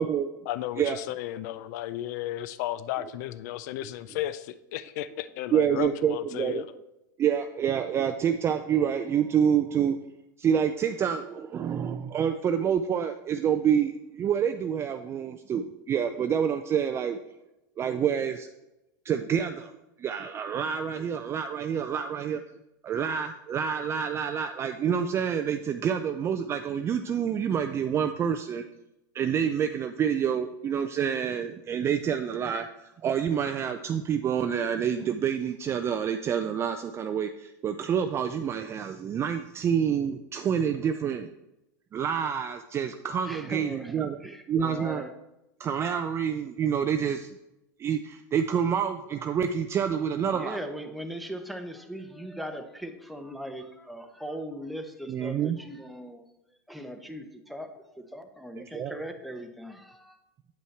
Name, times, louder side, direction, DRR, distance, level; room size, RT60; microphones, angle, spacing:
voice 1, 0.5-6.7, left 13 dB, 60° left, 15 dB, 0.4 m, -34 dB
voice 2, 5.5-6.6 7.2-10.0 10.4-17.2 17.8-18.5 19.0-19.7 20.0-22.4 22.8-28.6 29.1-41.3 41.9-45.0 45.6-47.3 47.8-50.6 55.1-55.6 58.6-59.0, right 8 dB, 25° right, 8 dB, 0.4 m, -27 dB
voice 3, 43.3-43.9 44.2-45.1 50.3-56.2 56.7-60.2, equal, ahead, 5 dB, 0.8 m, -39 dB
8.9 x 5.3 x 3.3 m, 0.92 s
hypercardioid pair, 110°, 10 cm